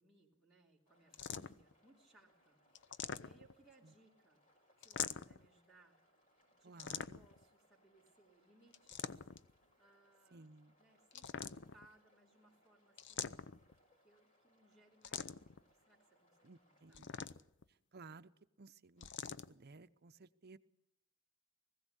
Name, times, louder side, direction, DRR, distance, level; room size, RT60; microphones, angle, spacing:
voice 1, 0.0-2.6 3.0-4.4 4.8-6.0 6.5-9.2 9.8-10.5 10.8-13.7 14.0-17.0, right 2 dB, ahead, -2 dB, 3.3 m, -68 dB
sound 1, 0.9-17.0, equal, 40° left, 5.8 m, -74 dB
sound 2, 1.1-1.7 2.8-3.6 4.8-5.5 6.8-7.4 8.7-9.5 11.1-11.9 13.0-13.7 15.0-15.6 16.9-17.6 19.0-19.5, left 7 dB, 60° left, 0.7 m, -44 dB
voice 2, 6.6-7.2 10.3-10.7 16.4-17.4 17.9-18.3 18.6-20.6, right 3 dB, 50° right, 11 dB, 0.8 m, -58 dB
20.0 x 16.0 x 8.1 m, 0.85 s
head